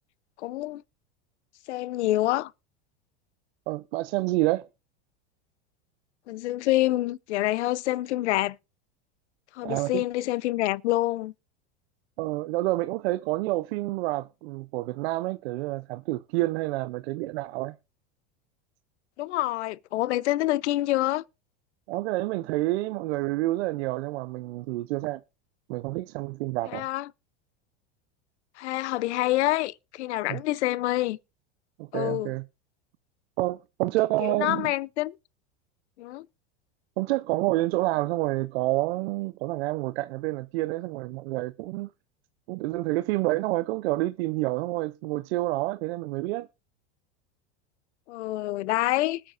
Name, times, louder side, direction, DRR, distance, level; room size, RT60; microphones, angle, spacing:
voice 1, 0.4-0.8 1.7-2.5 6.3-8.6 9.5-11.3 19.2-21.2 26.7-27.1 28.6-31.2 31.9-32.3 34.2-35.2 36.0-36.3 48.1-49.2, left 16 dB, 85° left, 0.6 m, -27 dB
voice 2, 3.7-4.7 9.6-10.0 12.2-17.7 21.9-25.2 25.7-26.9 30.3-30.4 31.8-32.4 33.4-34.7 37.0-41.9 42.5-46.5, right 19 dB, 70° right, 0.6 m, -28 dB
20.5 x 8.7 x 2.5 m
supercardioid pair, 115°, 33 cm